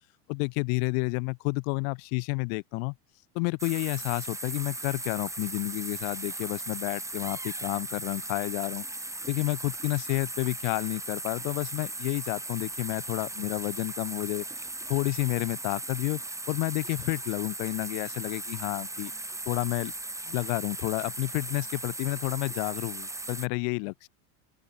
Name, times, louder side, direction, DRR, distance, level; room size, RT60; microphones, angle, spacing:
voice 1, 0.3-2.9 3.3-8.8 9.3-14.4 14.9-16.2 16.5-19.1 19.5-19.9 20.3-24.1, left 40 dB or more, 65° left, 1.4 m, -30 dB
sound 1, 3.6-23.5, right 2 dB, 5° right, 2.7 m, -38 dB
open air
supercardioid pair, 100°, 42 cm